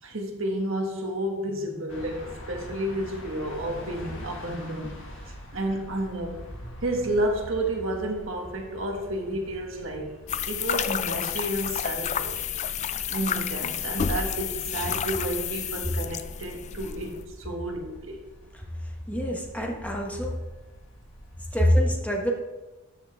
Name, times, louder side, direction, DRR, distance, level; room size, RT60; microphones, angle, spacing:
voice 1, 0.0-4.9 5.2-6.4 6.8-10.1 10.4-12.5 13.1-18.2, right 1 dB, 65° right, 1 dB, 1.6 m, -31 dB
sound 1, 1.9-21.6, equal, 60° left, 1.9 m, -45 dB
sound 2, 10.3-17.2, left 8 dB, 35° left, 0.3 m, -30 dB
voice 2, 18.5-20.4 21.5-22.3, equal, 5° left, 0 dB, 1.1 m, -26 dB
13.0 x 5.8 x 3.5 m, 1.1 s
head